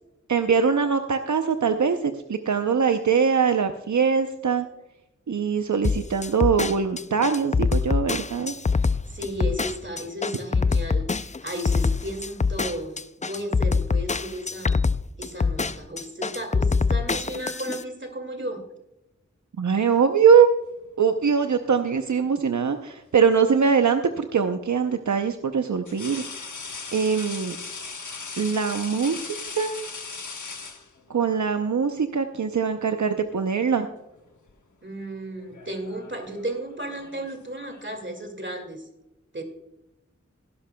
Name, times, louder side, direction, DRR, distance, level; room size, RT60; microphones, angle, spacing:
voice 1, 0.3-4.7 5.3-8.5 19.6-20.5 21.0-26.2 26.9-27.6 28.4-29.8 31.1-33.9, right 6 dB, 75° right, 7 dB, 0.6 m, -22 dB
sound 1, 5.8-17.8, left 4 dB, 25° left, 0.3 m, -24 dB
voice 2, 9.1-14.8 15.2-18.6 34.8-38.9 39.3-39.4, right 1 dB, 40° right, 4 dB, 2.1 m, -34 dB
sound 2, 21.6-22.4 24.2-24.3 25.9-31.3 32.5-32.7 33.1-33.9 34.1-34.5 35.4-38.0, left 4 dB, 90° left, 1.0 m, -39 dB
17.0 x 11.0 x 2.2 m, 0.92 s
wide cardioid pair, 50°, 29 cm